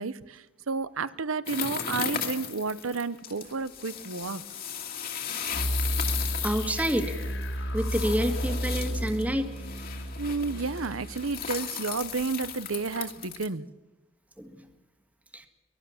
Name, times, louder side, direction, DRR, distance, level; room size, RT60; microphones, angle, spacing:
voice 1, 0.0-4.4 10.2-13.7, right 4 dB, 80° right, 16 dB, 0.9 m, -31 dB
sound 1, 1.5-13.5, left 8 dB, 45° left, 2.5 m, -36 dB
sound 2, 5.5-12.3, equal, 70° left, 3.8 m, -33 dB
voice 2, 6.4-7.1 7.7-9.5 14.4-14.7 15.3-15.5, equal, 5° right, 6 dB, 1.8 m, -28 dB
23.5 x 20.5 x 7.2 m, 1.1 s
head